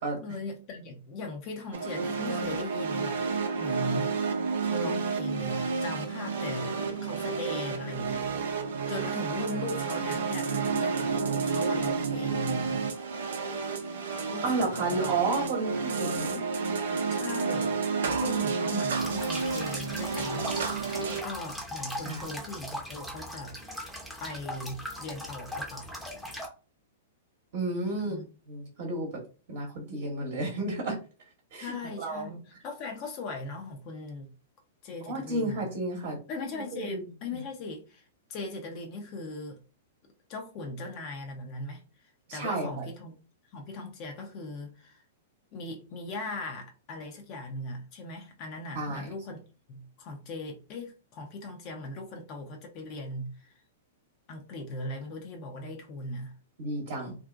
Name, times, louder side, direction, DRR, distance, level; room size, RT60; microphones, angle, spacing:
voice 1, 0.2-3.2 3.6-4.2 4.6-8.6 8.9-12.8 14.3-15.1 17.1-20.5 21.0-23.6 24.2-25.9 28.0-28.3 31.6-34.3 34.8-35.7 36.3-38.0 38.3-39.6 40.3-41.8 42.3-43.2 43.5-45.0 45.5-49.4 49.7-53.5 54.3-56.3, left 2 dB, 40° left, 0.6 m, -39 dB
sound 1, 1.7-21.2, right 5 dB, 70° right, 0.5 m, -30 dB
voice 2, 14.4-16.4 16.9-17.2 22.0-22.2 27.5-28.2 28.5-29.2 29.5-31.0 31.5-32.4 35.0-36.2 36.5-37.0 42.3-42.9 48.7-49.1 56.6-57.1, right 2 dB, 55° right, 0.9 m, -32 dB
Fountain being shut down, 19.0-26.5, equal, 5° left, 0.7 m, -39 dB
2.5 x 2.1 x 2.5 m
hypercardioid pair, 110°, 0 cm